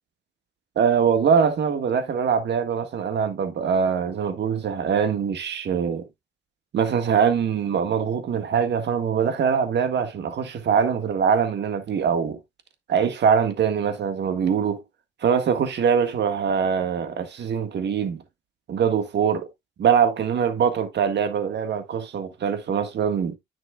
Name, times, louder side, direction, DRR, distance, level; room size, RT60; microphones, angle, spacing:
voice 1, 0.7-6.1 6.7-12.4 12.9-14.8 15.2-18.2 18.7-19.5 19.8-23.4, right 7 dB, 60° right, 1.7 m, -23 dB
9.9 x 6.1 x 2.3 m
cardioid pair, 90°, 20 cm